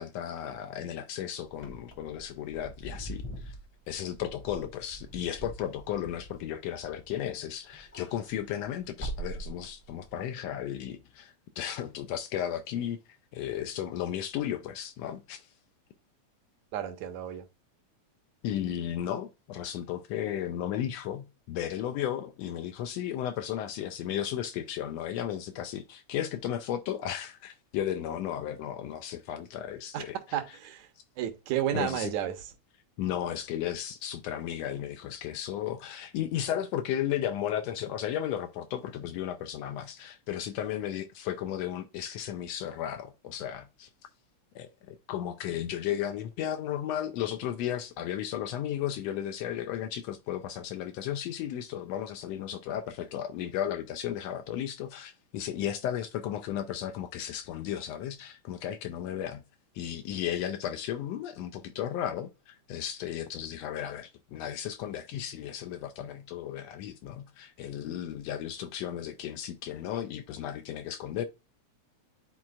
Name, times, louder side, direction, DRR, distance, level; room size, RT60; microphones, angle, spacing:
voice 1, 0.0-3.5 3.9-13.0 13.3-15.5 18.4-30.4 31.7-32.1 33.0-43.9 44.5-59.4 59.7-71.2, left 10 dB, 80° left, 1.6 m, -34 dB
Wind / Car, 1.5-7.3 7.7-10.1, right 2 dB, 25° left, 0.6 m, -43 dB
voice 2, 16.7-17.5 29.9-30.0 30.3-30.9 31.2-32.5, right 11 dB, 80° right, 2.3 m, -32 dB
10.5 x 4.2 x 2.4 m
omnidirectional pair, 3.3 m